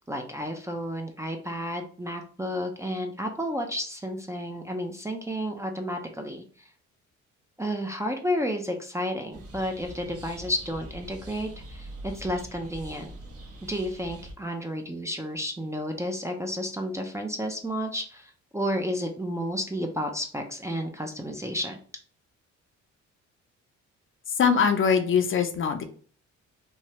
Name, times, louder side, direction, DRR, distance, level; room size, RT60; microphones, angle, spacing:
voice 1, 0.1-6.4 7.6-13.1 13.7-21.8, equal, 10° right, 2 dB, 0.4 m, -31 dB
sound 1, 9.3-14.3, equal, 50° right, 0.9 m, -43 dB
voice 2, 24.3-25.8, left 6 dB, 45° left, 7 dB, 0.5 m, -22 dB
3.1 x 2.2 x 2.7 m, 0.43 s
cardioid pair, 90°, 30 cm